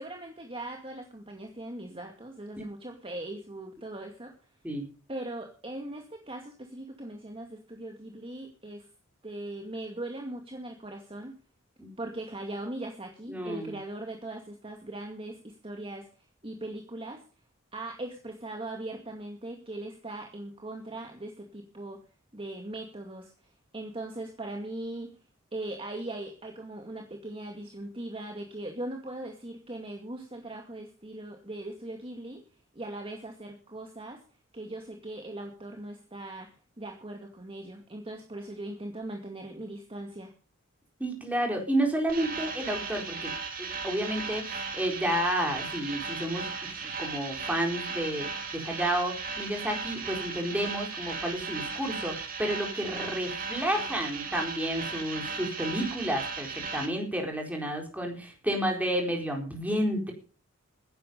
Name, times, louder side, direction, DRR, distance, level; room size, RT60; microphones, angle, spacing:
voice 1, 0.0-4.3 5.1-8.9 9.2-11.3 12.0-16.1 16.4-17.2 17.7-22.0 22.3-23.3 23.7-25.1 25.5-32.4 32.7-34.2 34.5-36.5 36.8-40.3, right 1 dB, 25° right, 2 dB, 2.2 m, -39 dB
voice 2, 13.3-13.8 41.0-43.3 43.6-46.5 46.8-48.3 48.5-60.1, right 1 dB, 5° right, 1 dB, 4.2 m, -31 dB
sound 1, 42.1-56.9, right 5 dB, 45° right, 2.9 m, -36 dB
16.5 x 10.5 x 5.4 m, 0.37 s
head